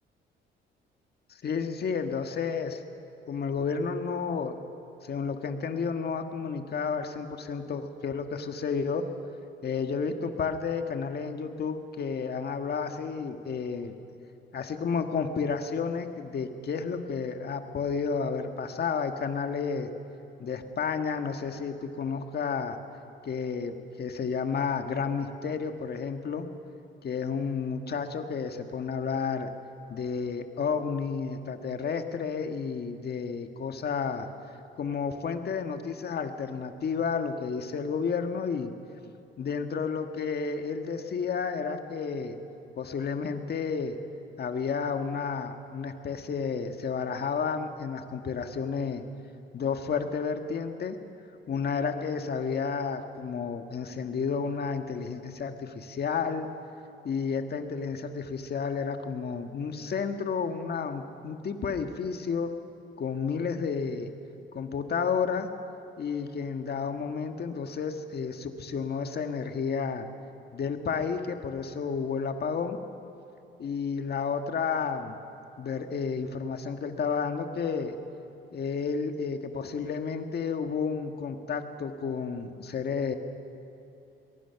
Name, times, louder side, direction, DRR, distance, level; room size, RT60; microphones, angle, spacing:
voice 1, 1.3-2.8 3.3-4.6 5.0-9.1 9.6-13.9 14.5-19.9 20.4-22.8 23.2-26.5 27.0-29.5 29.9-34.3 34.8-38.7 39.4-42.4 42.8-44.0 44.4-49.0 49.5-51.0 51.5-56.5 57.0-62.6 63.0-64.1 64.5-65.5 66.0-70.1 70.5-72.8 73.6-75.2 75.6-78.0 78.5-83.1, left 5 dB, 55° left, 6 dB, 1.7 m, -31 dB
23.0 x 22.0 x 5.9 m, 2.8 s
cardioid pair, 90°, 20 cm